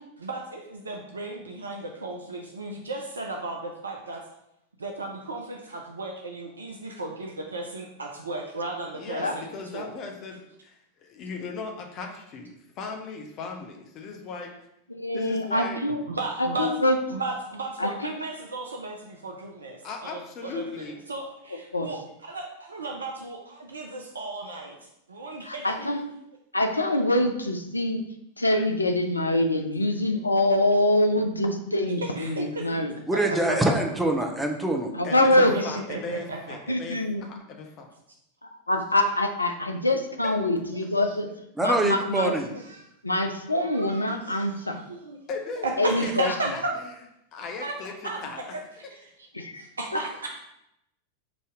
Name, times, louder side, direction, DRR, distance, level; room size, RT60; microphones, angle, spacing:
voice 1, 0.2-4.2 4.8-9.4 9.7-9.9 15.9-16.8 17.1-25.9 32.0-33.0 33.3-33.7 35.3-36.6 40.7-41.2 42.7-42.8 43.6-45.2 45.6-46.7 47.6-49.3 49.5-50.4, right 2 dB, 75° right, 1 dB, 0.4 m, -35 dB
voice 2, 9.0-14.5 15.1-15.9 19.8-21.0 35.0-35.4 35.6-37.9 40.2-40.3 44.2-44.6 45.3-45.7 46.0-46.6 47.3-48.5, left 4 dB, 35° left, 3 dB, 0.6 m, -37 dB
voice 3, 14.9-16.0 16.6-16.9 17.8-17.9 21.7-21.9 25.5-26.0 26.5-28.0 28.4-32.9 35.1-35.5 36.7-37.2 38.7-41.3 41.6-42.3 43.0-44.8 45.8-46.3 49.3-49.6, left 1 dB, 80° left, 5 dB, 0.4 m, -24 dB
voice 4, 33.1-35.3 41.5-42.5, right 1 dB, 5° right, 2 dB, 0.6 m, -25 dB
5.0 x 2.7 x 3.5 m, 0.80 s
figure-of-eight pair, 90°, 0 cm